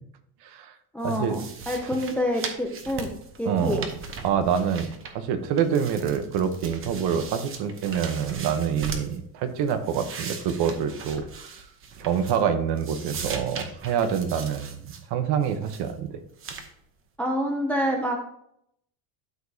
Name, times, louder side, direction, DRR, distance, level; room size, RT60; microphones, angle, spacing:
voice 1, 0.4-0.7 1.0-1.4 1.8-1.9 3.4-3.9 4.2-11.5 12.0-14.8 15.1-16.2, right 7 dB, 50° right, 9 dB, 1.0 m, -26 dB
voice 2, 0.9-3.1 3.4-3.8 17.2-18.2, equal, 5° left, 2 dB, 0.4 m, -27 dB
sound 1, 1.0-5.3 5.6-9.2 9.6-12.5 12.8-15.0 15.4-15.9 16.4-16.7, right 5 dB, 25° right, 0.9 m, -39 dB
12.0 x 5.0 x 2.7 m, 0.73 s
cardioid pair, 160°, 48 cm